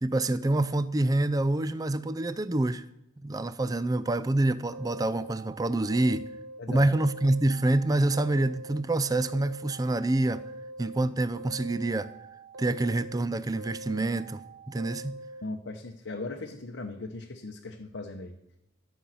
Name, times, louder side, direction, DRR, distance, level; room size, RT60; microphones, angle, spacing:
voice 1, 0.0-2.8 3.2-6.3 6.7-10.4 10.8-12.1 12.6-14.4 14.7-15.1, right 2 dB, 20° right, 0.4 m, -26 dB
sound 1, 4.7-6.6 6.9-8.8 9.1-11.0 11.3-13.2 13.6-15.4, right 1 dB, 85° right, 0.9 m, -44 dB
voice 2, 6.6-6.9 15.4-18.4, left 2 dB, 70° left, 0.9 m, -38 dB
14.0 x 5.5 x 7.7 m
head